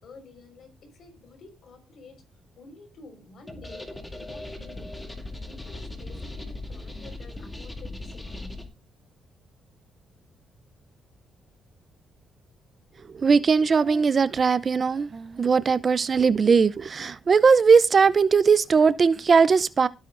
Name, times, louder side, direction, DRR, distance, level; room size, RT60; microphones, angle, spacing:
voice 1, 0.0-2.2 2.6-8.6, left 3 dB, 60° left, 4.8 m, -50 dB
sound 1, 3.5-8.7, left 2 dB, 10° left, 2.5 m, -38 dB
voice 2, 13.1-19.9, right 5 dB, 40° right, 0.6 m, -19 dB
18.0 x 9.2 x 2.6 m
cardioid pair, 90°, 0 cm